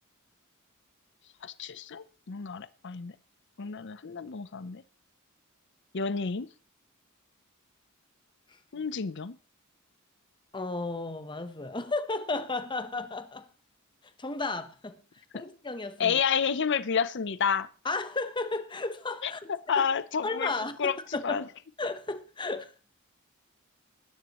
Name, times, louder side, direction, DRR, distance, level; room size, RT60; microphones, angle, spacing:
voice 1, 1.4-3.1 3.6-4.8 5.9-6.5 8.7-9.4 16.0-17.7 19.2-20.5 20.8-20.9 21.2-21.4, left 6 dB, 55° left, 0.7 m, -30 dB
voice 2, 10.5-13.5 14.2-15.0 15.3-16.2 17.8-19.8 20.2-21.4 21.8-22.7, left 3 dB, 20° left, 0.9 m, -34 dB
19.5 x 10.0 x 3.0 m
head